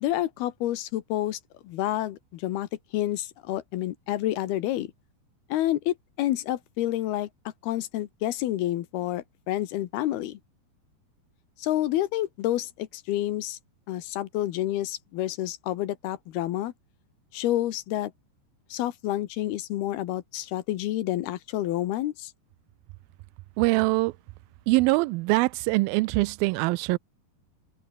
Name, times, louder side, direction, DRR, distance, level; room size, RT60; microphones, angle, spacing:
voice 1, 0.0-4.9 5.5-7.3 7.6-10.4 11.6-13.6 13.9-16.7 17.3-18.1 18.7-22.3, left 14 dB, 75° left, 3.0 m, -29 dB
voice 2, 23.6-24.1 24.7-27.0, right 23 dB, 90° right, 2.1 m, -23 dB
open air
omnidirectional pair, 4.8 m